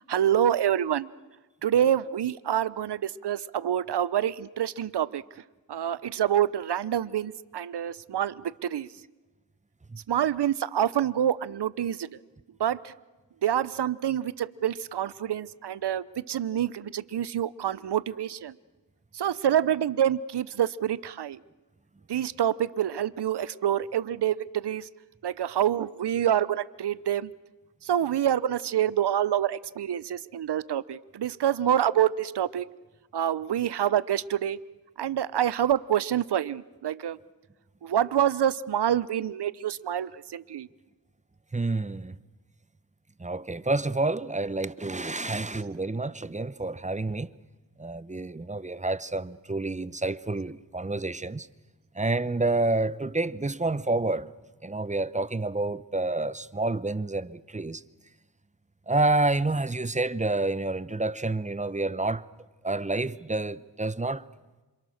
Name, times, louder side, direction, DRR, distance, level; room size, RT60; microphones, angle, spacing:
voice 1, 0.1-1.1 1.6-5.2 5.7-8.9 10.1-12.1 12.6-12.9 13.4-18.5 19.1-21.4 22.1-24.9 25.2-27.3 27.8-32.6 33.1-34.6 35.0-37.2 37.8-40.7, right 10 dB, 65° right, 0.9 m, -27 dB
voice 2, 41.5-42.2 43.2-47.3 47.8-51.5 52.0-54.3 54.6-57.8 58.9-62.2 62.6-64.2, right 2 dB, 15° right, 0.9 m, -28 dB
28.0 x 26.0 x 6.6 m
cardioid pair, 60°, 44 cm